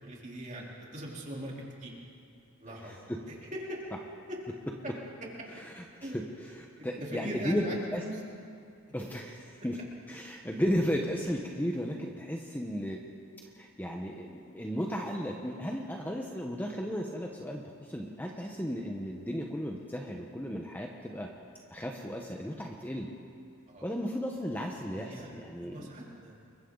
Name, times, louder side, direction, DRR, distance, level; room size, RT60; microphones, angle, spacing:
voice 1, 0.0-0.7 0.9-1.9 2.6-2.9 3.3-3.8 4.3-4.4 6.0-6.2 6.8-8.2 23.7-23.8 24.9-26.4, equal, 35° right, -3 dB, 3.8 m, -40 dB
voice 2, 2.8-3.2 5.6-8.0 8.9-9.8 10.1-13.0 13.6-21.3 21.7-23.1 23.8-25.9, equal, 10° left, 0 dB, 1.1 m, -35 dB
30.0 x 23.0 x 4.0 m, 2.4 s
head